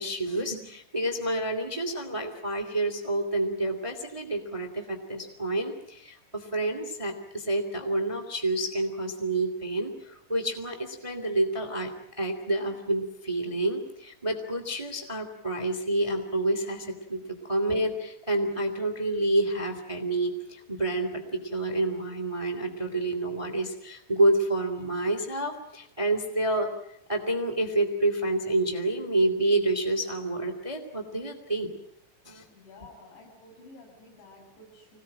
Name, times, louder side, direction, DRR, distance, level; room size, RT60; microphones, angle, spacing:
voice 1, 0.0-26.7 27.1-31.7 32.2-32.4, right 2 dB, 10° right, 6 dB, 1.5 m, -28 dB
voice 2, 32.5-35.0, left 2 dB, 75° left, 1 dB, 9.8 m, -51 dB
26.0 x 19.0 x 8.9 m, 0.74 s
omnidirectional pair, 5.3 m